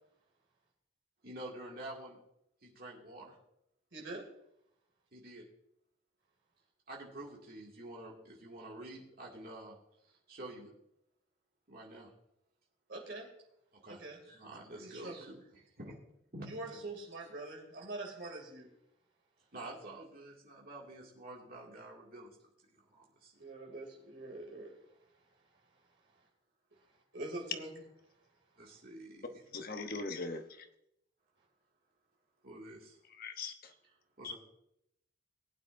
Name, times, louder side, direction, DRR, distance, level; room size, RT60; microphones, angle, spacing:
voice 1, 1.2-2.2 2.6-3.4 5.1-5.4 6.9-9.7 10.1-10.7 11.7-12.1 13.8-16.0 16.3-16.9 19.5-22.3 22.7-23.3 28.6-29.4 32.4-33.0 34.2-34.3, right 1 dB, 50° right, 2.3 m, -48 dB
voice 2, 3.9-4.3 12.9-13.3 13.9-14.2 14.8-15.2 16.5-18.7 23.3-24.7 27.1-27.8, right 2 dB, 65° right, 2.7 m, -44 dB
voice 3, 29.5-30.7 33.2-33.5 34.2-34.3, left 3 dB, 50° left, 1.0 m, -40 dB
19.0 x 9.0 x 2.6 m
head